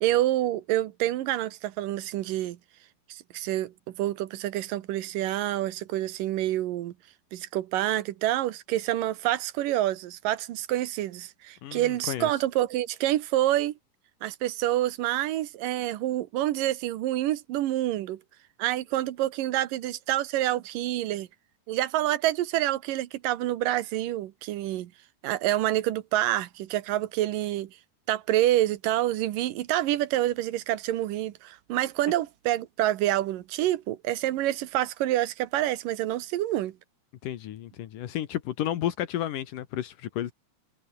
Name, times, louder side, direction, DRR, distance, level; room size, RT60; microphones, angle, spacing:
voice 1, 0.0-2.6 3.1-3.7 4.0-6.9 7.3-13.7 14.2-18.2 18.6-21.3 21.7-24.9 25.2-27.7 28.1-36.7, right 14 dB, 90° right, 2.8 m, -27 dB
voice 2, 11.6-12.3 37.2-40.3, left 12 dB, 80° left, 3.0 m, -32 dB
omnidirectional pair, 3.7 m